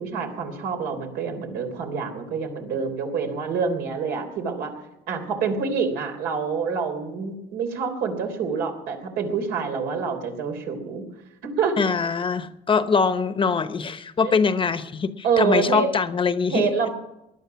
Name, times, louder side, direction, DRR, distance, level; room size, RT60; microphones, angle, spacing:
voice 1, 0.0-4.7 5.1-11.0 11.4-11.8 14.2-14.3 15.2-15.9 16.5-16.9, right 5 dB, 80° right, 4 dB, 3.5 m, -26 dB
voice 2, 11.8-16.9, left 5 dB, 30° left, 11 dB, 1.0 m, -23 dB
20.0 x 11.5 x 5.9 m, 0.88 s
cardioid pair, 110°, 17 cm